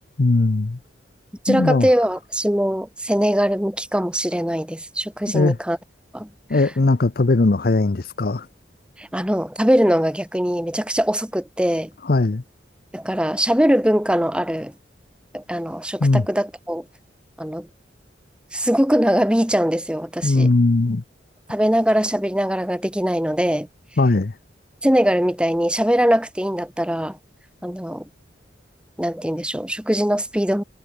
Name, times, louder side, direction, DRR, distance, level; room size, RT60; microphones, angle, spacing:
voice 1, 0.2-0.8 1.5-1.9 5.3-5.6 6.5-8.5 12.0-12.4 16.0-16.3 20.2-21.0 24.0-24.3, left 2 dB, 55° left, 0.7 m, -19 dB
voice 2, 1.4-5.8 6.1-6.3 9.0-11.9 12.9-14.7 15.3-16.8 17.4-17.7 18.5-20.5 21.5-23.7 24.8-27.2 27.6-28.1 29.0-30.6, equal, 5° right, 2.9 m, -21 dB
head